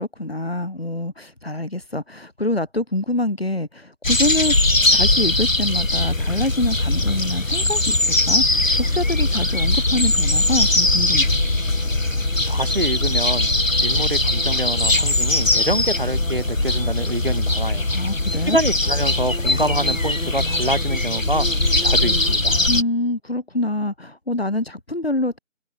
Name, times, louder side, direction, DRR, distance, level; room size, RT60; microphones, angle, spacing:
voice 1, 0.0-4.6 4.9-11.3 17.9-18.6 22.7-25.4, left 1 dB, 50° left, 3.0 m, -25 dB
sound 1, 4.0-22.8, left 2 dB, 80° left, 4.0 m, -20 dB
voice 2, 12.5-13.5 13.8-17.9 18.5-22.6, right 1 dB, 45° right, 1.7 m, -26 dB
figure-of-eight pair, 180°, 39 cm